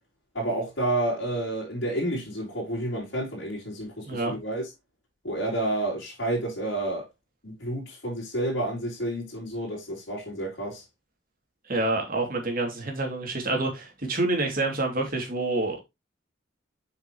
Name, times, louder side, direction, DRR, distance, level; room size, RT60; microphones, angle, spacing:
voice 1, 0.3-4.6 5.2-7.0 7.4-10.8, right 1 dB, 60° left, 4.1 m, -30 dB
voice 2, 11.7-15.8, right 2 dB, 45° right, 2.7 m, -27 dB
7.9 x 5.8 x 3.1 m
head